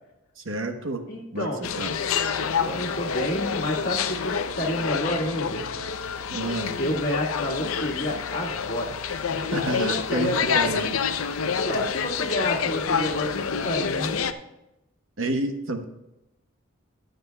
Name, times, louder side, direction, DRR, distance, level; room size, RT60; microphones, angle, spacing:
voice 1, 0.4-1.0 1.3-1.9 6.3-6.8 9.5-11.0 11.5-11.6 15.2-15.8, right 2 dB, 70° right, 6 dB, 1.0 m, -29 dB
voice 2, 1.1-1.6 2.4-5.7 6.8-10.7 11.6-14.2, equal, 45° left, -2 dB, 1.6 m, -30 dB
sound 1, 1.6-14.3, left 6 dB, 85° left, 0.6 m, -28 dB
22.0 x 7.9 x 2.3 m, 0.93 s
head